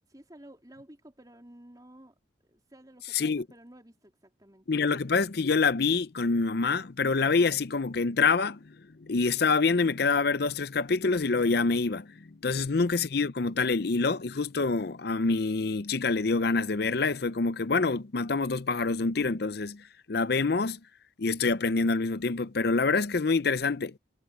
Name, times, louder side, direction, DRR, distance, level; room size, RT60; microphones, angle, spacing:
voice 1, 0.1-2.1 2.4-5.2 12.4-12.8, right 1 dB, 20° right, 3.5 m, -53 dB
voice 2, 3.1-3.4 4.7-20.8 21.2-24.0, left 4 dB, 55° left, 0.6 m, -26 dB
head